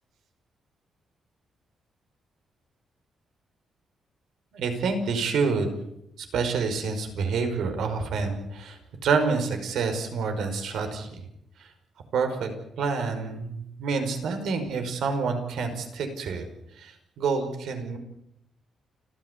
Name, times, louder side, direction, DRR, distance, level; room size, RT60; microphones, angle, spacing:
voice 1, 4.5-5.7 6.3-11.2 12.1-12.5 12.8-16.5 16.8-18.0, right 4 dB, 75° right, 6 dB, 5.3 m, -28 dB
29.5 x 13.5 x 8.3 m, 0.78 s
cardioid pair, 160°, 0 cm